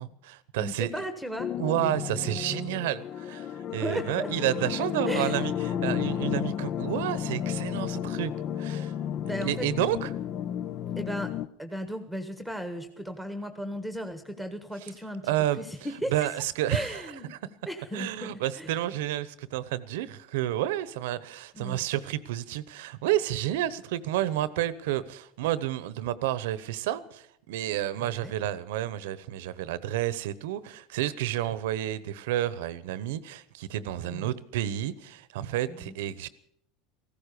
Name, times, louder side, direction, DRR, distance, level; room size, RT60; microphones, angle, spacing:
voice 1, 0.0-0.9 1.6-3.5 3.7-8.3 8.6-8.9 9.4-10.1 15.2-15.6 16.1-17.0 17.9-36.3, right 13 dB, 80° right, 0.9 m, -30 dB
voice 2, 0.6-1.5 3.7-4.3 5.1-5.5 9.2-9.7 11.0-11.3 11.6-16.3 16.7-17.4 17.6-18.8 21.5-21.9 27.9-28.3 34.0-34.3 35.7-35.9, equal, ahead, 1.4 m, -36 dB
sound 1, 1.4-11.5, left 9 dB, 45° left, 0.5 m, -32 dB
15.5 x 14.0 x 6.8 m
supercardioid pair, 115°, 0 cm